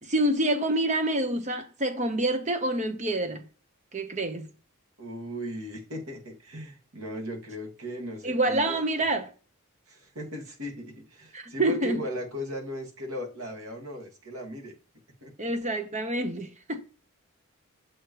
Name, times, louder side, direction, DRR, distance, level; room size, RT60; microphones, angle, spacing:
voice 1, 0.0-3.5 3.9-4.5 8.2-9.3 11.3-12.0 15.4-16.8, right 1 dB, 35° right, 1.0 m, -27 dB
voice 2, 5.0-9.1 9.9-14.7 15.2-15.3, equal, 75° right, 2.0 m, -37 dB
7.3 x 4.8 x 3.0 m
head